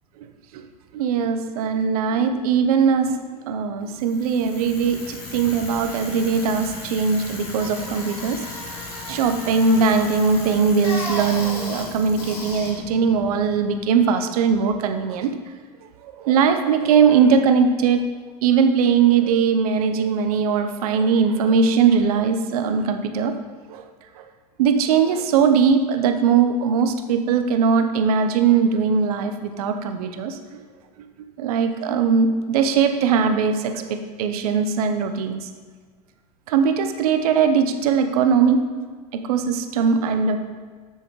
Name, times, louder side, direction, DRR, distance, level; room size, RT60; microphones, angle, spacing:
voice 1, 0.9-8.4 9.1-15.3 16.0-18.0 18.4-23.3 23.7-23.8 24.2-24.3 24.6-30.6 31.4-35.5 36.5-38.6 39.3-40.4, right 6 dB, 65° right, 7 dB, 0.7 m, -20 dB
Bicycle, 3.9-14.0, left 2 dB, 65° left, 2.1 m, -35 dB
7.3 x 7.0 x 3.0 m, 1.5 s
figure-of-eight pair, 85°, 21 cm